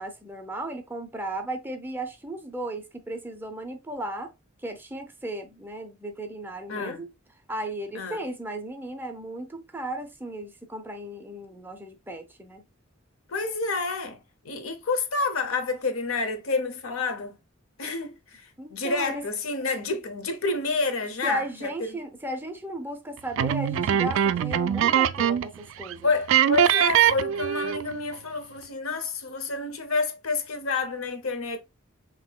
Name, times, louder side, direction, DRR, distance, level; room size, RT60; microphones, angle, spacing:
voice 1, 0.0-4.3 4.6-7.1 7.5-12.6 18.6-19.2 21.2-26.1, right 1 dB, 10° right, 0.6 m, -35 dB
voice 2, 6.7-7.0 7.9-8.2 13.3-14.2 14.4-17.4 17.8-22.0 26.0-31.6, left 3 dB, 85° left, 0.8 m, -29 dB
sound 1, 23.4-25.6 25.8-25.9 26.3-27.9, right 10 dB, 65° right, 0.3 m, -22 dB
5.4 x 2.9 x 2.3 m
head